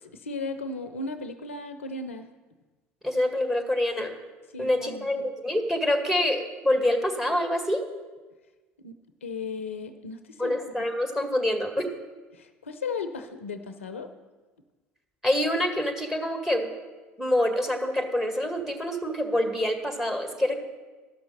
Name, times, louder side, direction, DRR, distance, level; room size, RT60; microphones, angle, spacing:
voice 1, 0.0-2.3 4.5-5.1 8.8-10.9 12.3-14.1, left 3 dB, 85° left, 9 dB, 0.6 m, -36 dB
voice 2, 3.0-4.1 4.6-7.8 10.4-11.9 15.2-16.7 17.2-20.6, left 1 dB, 5° right, 5 dB, 1.7 m, -26 dB
13.0 x 5.9 x 6.5 m, 1.3 s
hypercardioid pair, 70°, 7 cm